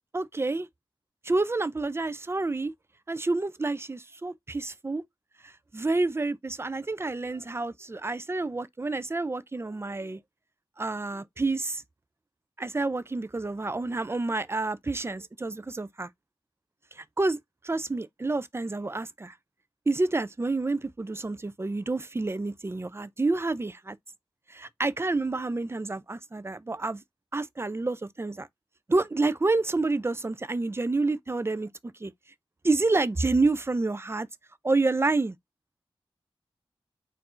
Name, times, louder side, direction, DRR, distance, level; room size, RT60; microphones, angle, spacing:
voice 1, 0.1-0.7 1.2-2.7 3.1-5.0 5.4-10.2 10.8-11.8 12.6-16.1 16.9-17.4 17.6-19.3 19.9-24.0 24.5-27.0 27.3-28.5 28.9-31.7 32.0-32.1 32.6-34.3 34.6-35.3, right 3 dB, 25° right, 0.5 m, -28 dB
4.4 x 2.6 x 4.3 m
wide cardioid pair, 100°, 10 cm